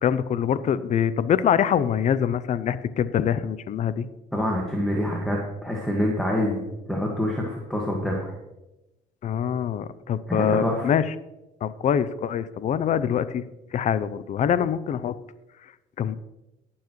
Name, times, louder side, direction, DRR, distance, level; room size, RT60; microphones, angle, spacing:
voice 1, 0.0-4.1 9.2-11.1 11.6-13.4 13.7-15.2 16.0-16.2, left 8 dB, 45° left, 15 dB, 0.6 m, -24 dB
voice 2, 4.3-8.3 10.3-10.9, left 1 dB, ahead, -1 dB, 1.8 m, -26 dB
19.0 x 7.2 x 3.1 m, 0.96 s
cardioid pair, 110°, 17 cm